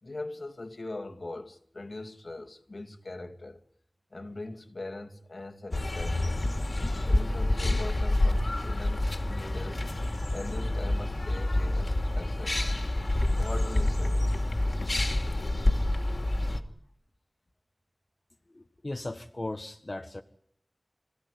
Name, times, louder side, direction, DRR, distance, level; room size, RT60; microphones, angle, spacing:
voice 1, 0.0-3.6 4.1-6.4 7.1-9.9 10.3-12.7 13.4-14.4, left 2 dB, 85° left, 2.5 m, -41 dB
sound 1, 5.7-16.6, left 1 dB, 65° left, 2.8 m, -28 dB
voice 2, 18.5-20.2, left 2 dB, 50° left, 1.5 m, -37 dB
26.5 x 16.5 x 9.6 m
wide cardioid pair, 50°, 0 cm